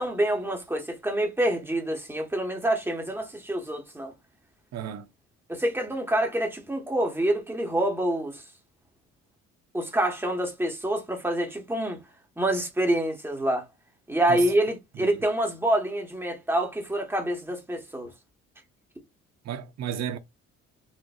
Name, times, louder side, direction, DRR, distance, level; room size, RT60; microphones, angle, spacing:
voice 1, 0.0-4.1 5.5-8.4 9.7-12.0 12.4-13.6 14.1-18.1, right 1 dB, 5° right, 1.2 m, -27 dB
voice 2, 4.7-5.1 14.3-14.5 15.0-15.1 19.4-20.2, right 9 dB, 60° right, 0.7 m, -33 dB
4.3 x 2.5 x 2.4 m
cardioid pair, 90°, 30 cm